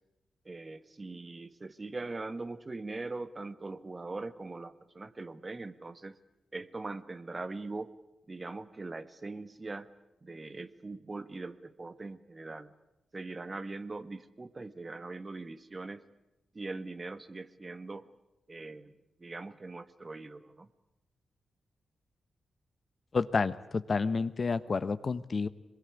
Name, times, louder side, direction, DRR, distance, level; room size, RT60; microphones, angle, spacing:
voice 1, 0.4-6.1 6.5-7.9 8.3-9.9 10.2-12.7 13.1-16.0 16.5-18.1 18.5-18.9 19.2-20.7, right 3 dB, 35° right, 13 dB, 1.4 m, -41 dB
voice 2, 23.1-25.5, left 4 dB, 50° left, 14 dB, 1.1 m, -30 dB
23.5 x 21.5 x 9.8 m, 0.94 s
supercardioid pair, 40°, 0 cm